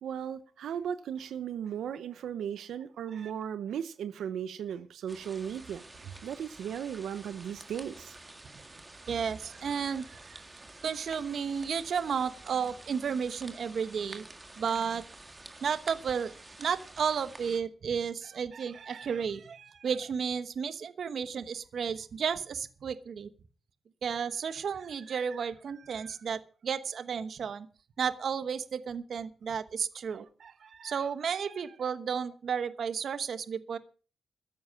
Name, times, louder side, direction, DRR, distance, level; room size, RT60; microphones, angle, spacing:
voice 1, 0.0-8.2, right 8 dB, 90° right, 0.9 m, -36 dB
sound 1, 5.1-17.6, right 2 dB, 15° right, 1.8 m, -50 dB
voice 2, 9.1-10.4 10.8-14.3 14.6-15.0 15.6-16.3 16.6-23.3 24.0-27.7 28.0-33.8, right 6 dB, 55° right, 1.1 m, -33 dB
14.0 x 10.5 x 6.3 m
wide cardioid pair, 150°, 0 cm